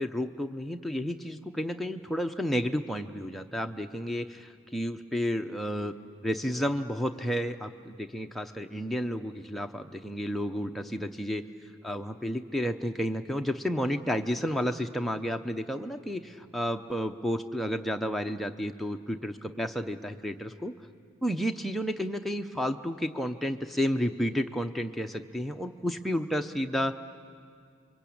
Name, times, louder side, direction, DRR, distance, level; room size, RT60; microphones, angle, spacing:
voice 1, 0.0-5.9 6.2-11.4 11.8-20.7 21.2-27.0, equal, ahead, 3 dB, 0.7 m, -31 dB
28.0 x 23.0 x 8.6 m, 2.2 s
head